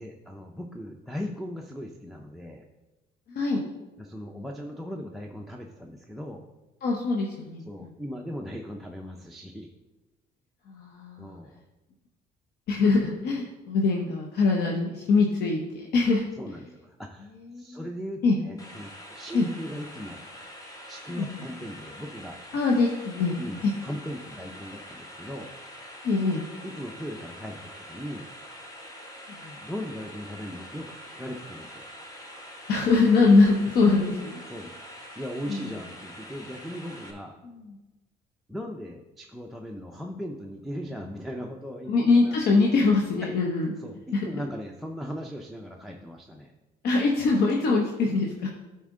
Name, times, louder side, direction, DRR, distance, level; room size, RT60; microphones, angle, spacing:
voice 1, 0.0-2.7 4.0-6.4 7.6-9.7 11.2-11.6 16.4-20.2 20.9-22.4 23.4-25.5 26.6-28.2 29.6-31.8 34.5-34.7 35.2-37.4 38.5-41.9 42.2-42.4 43.2-43.3 43.8-46.5 47.2-47.3, equal, ahead, 2 dB, 0.5 m, -38 dB
voice 2, 3.3-3.6 4.4-4.5 6.8-7.6 10.7-11.4 12.7-16.6 17.5-17.8 18.2-18.4 19.3-19.5 21.1-21.4 22.5-23.4 23.6-23.7 26.0-26.4 29.3-29.6 32.7-34.4 35.5-35.7 37.6-37.7 41.9-43.7 44.1-44.4 46.8-48.5, left 3 dB, 70° left, 0 dB, 0.9 m, -23 dB
sound 1, 18.6-37.1, equal, 20° left, 1.2 m, -45 dB
11.0 x 4.3 x 3.7 m, 1.1 s
cardioid pair, 110°, 17 cm